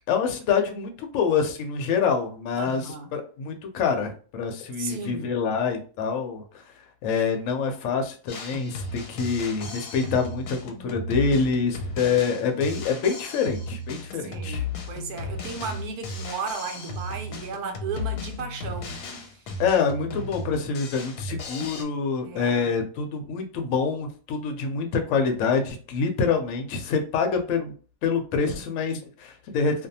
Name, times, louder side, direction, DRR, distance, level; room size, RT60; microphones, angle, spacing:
voice 1, 0.1-6.6 7.0-14.6 19.6-27.7 28.0-29.9, left 5 dB, 65° left, 0.8 m, -26 dB
voice 2, 2.6-3.1 4.8-5.3 14.1-19.4 20.1-20.2 22.2-22.7, right 5 dB, 75° right, 1.1 m, -35 dB
Drum kit, 8.3-21.8, left 3 dB, 90° left, 1.2 m, -35 dB
2.5 x 2.3 x 2.7 m
omnidirectional pair, 1.7 m